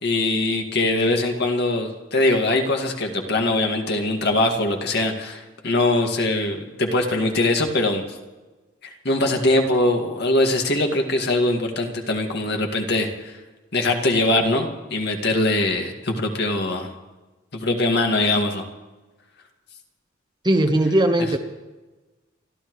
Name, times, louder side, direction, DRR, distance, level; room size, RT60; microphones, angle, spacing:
voice 1, 0.0-8.0 9.0-13.3 13.7-16.9 17.5-18.7, left 2 dB, 55° left, 3 dB, 2.1 m, -22 dB
voice 2, 20.4-21.4, right 1 dB, 20° right, 5 dB, 1.1 m, -18 dB
29.0 x 13.0 x 3.2 m, 1.2 s
head